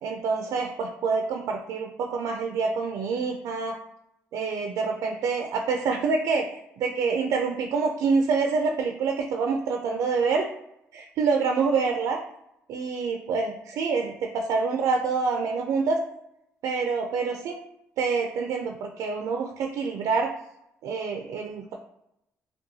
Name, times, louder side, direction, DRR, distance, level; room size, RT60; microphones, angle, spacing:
voice 1, 0.0-3.8 4.3-6.4 6.8-10.5 10.9-12.2 12.7-16.0 16.6-17.6 18.0-20.3 20.8-21.8, right 4 dB, 80° right, 3 dB, 0.4 m, -26 dB
5.3 x 2.2 x 2.7 m, 0.82 s
cardioid pair, 90°, 6 cm